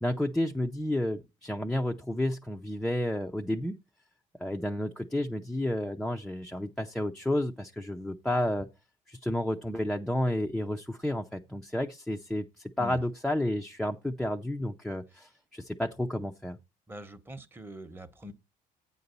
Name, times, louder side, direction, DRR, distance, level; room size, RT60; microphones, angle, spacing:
voice 1, 0.0-3.8 4.4-8.7 9.1-16.6, left 1 dB, 5° left, 0.5 m, -31 dB
voice 2, 16.9-18.3, equal, 15° right, 0.9 m, -43 dB
8.7 x 4.0 x 6.7 m
cardioid pair, 125°, 16 cm